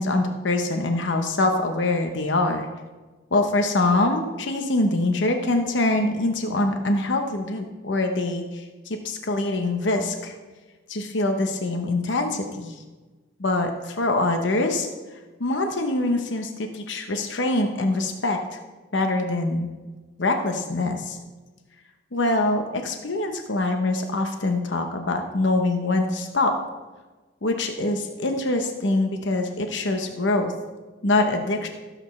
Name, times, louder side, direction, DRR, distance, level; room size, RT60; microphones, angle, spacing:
voice 1, 0.0-2.7 3.3-10.3 10.9-12.8 13.4-14.9 15.4-18.6 18.9-19.7 20.2-21.2 22.1-26.5 27.4-30.5 31.0-31.7, left 2 dB, 80° left, 5 dB, 0.9 m, -24 dB
16.0 x 7.7 x 3.2 m, 1.3 s
head